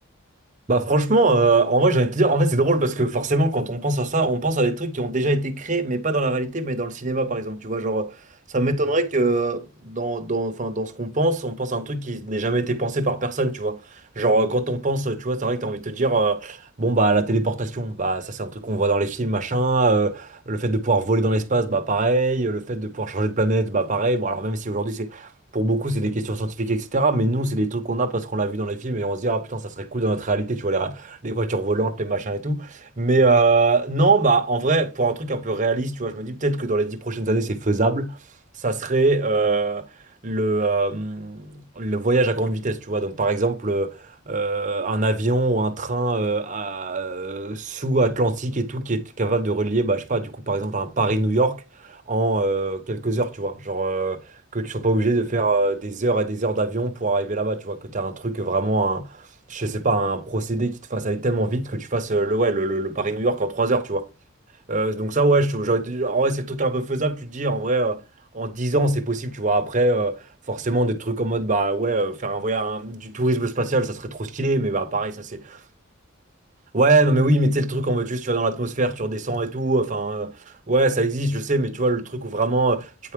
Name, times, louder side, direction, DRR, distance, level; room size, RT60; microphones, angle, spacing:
voice 1, 0.7-8.2 8.5-38.2 38.6-39.9 40.2-54.2 54.5-64.1 64.7-68.0 68.3-70.2 70.5-75.4 76.7-80.3 80.7-83.1, right 2 dB, 40° right, 0.9 m, -23 dB
9.2 x 4.6 x 3.6 m
head